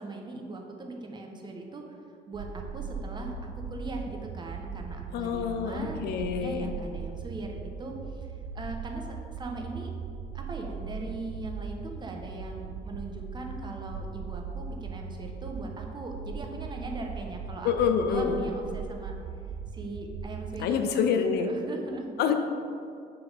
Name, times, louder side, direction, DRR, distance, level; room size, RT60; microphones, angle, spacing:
voice 1, 0.0-1.8 2.3-9.9 10.3-17.7 18.1-19.1 19.7-22.0, right 2 dB, 25° right, 2 dB, 1.0 m, -39 dB
sound 1, 2.3-20.7, right 6 dB, 70° right, 0.4 m, -39 dB
voice 2, 5.1-6.7 17.6-18.4 20.6-21.5 22.2-22.3, left 7 dB, 75° left, 6 dB, 0.5 m, -27 dB
6.6 x 4.1 x 5.5 m, 2.5 s
cardioid pair, 110°, 17 cm